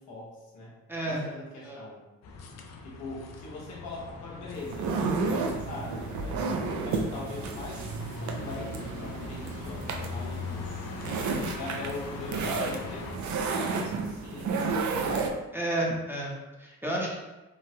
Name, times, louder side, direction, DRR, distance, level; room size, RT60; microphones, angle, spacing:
voice 1, 0.0-0.7 1.0-2.0 2.8-6.5 6.8-7.9 8.2-10.9 11.5-15.2, left 2 dB, 90° left, -5 dB, 1.0 m, -41 dB
voice 2, 0.9-1.2 1.6-1.8 15.5-17.1, right 1 dB, 5° right, -4 dB, 0.7 m, -31 dB
sound 1, 2.2-13.2, left 4 dB, 60° left, 0.5 m, -41 dB
sound 2, 4.5-15.3, right 4 dB, 70° right, 0.5 m, -32 dB
3.2 x 2.1 x 2.7 m, 1.1 s
cardioid pair, 90°, 30 cm